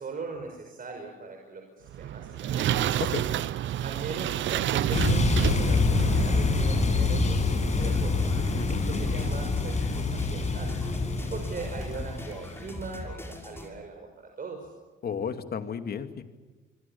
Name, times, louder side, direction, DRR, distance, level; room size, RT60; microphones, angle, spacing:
voice 1, 0.0-2.8 3.8-8.2 8.7-10.8 11.3-14.7, right 4 dB, 45° right, 3 dB, 5.5 m, -40 dB
sound 1, 1.9-6.8, right 11 dB, 70° right, 0.9 m, -29 dB
sound 2, 4.9-12.8, left 3 dB, 35° left, 7.2 m, -26 dB
sound 3, 7.7-13.7, left 1 dB, 10° left, 6.3 m, -42 dB
voice 2, 8.6-9.0 15.0-16.2, left 7 dB, 50° left, 8 dB, 2.4 m, -33 dB
27.0 x 24.5 x 7.2 m, 1.3 s
cardioid pair, 90°, 20 cm